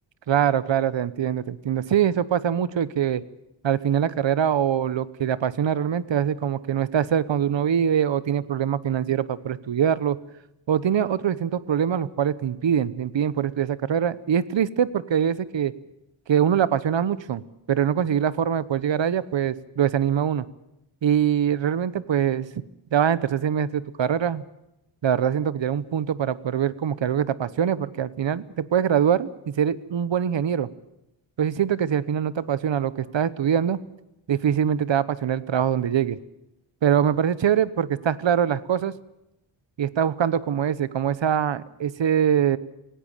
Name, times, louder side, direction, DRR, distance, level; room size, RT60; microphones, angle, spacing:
voice 1, 0.3-3.2 3.6-10.2 10.7-15.7 16.3-17.4 17.7-20.5 21.0-22.5 22.9-24.4 25.0-30.7 31.4-33.8 34.3-36.2 36.8-38.9 39.8-42.6, right 9 dB, 60° right, 17 dB, 1.1 m, -23 dB
18.0 x 17.0 x 8.9 m, 0.88 s
wide cardioid pair, 110°, 49 cm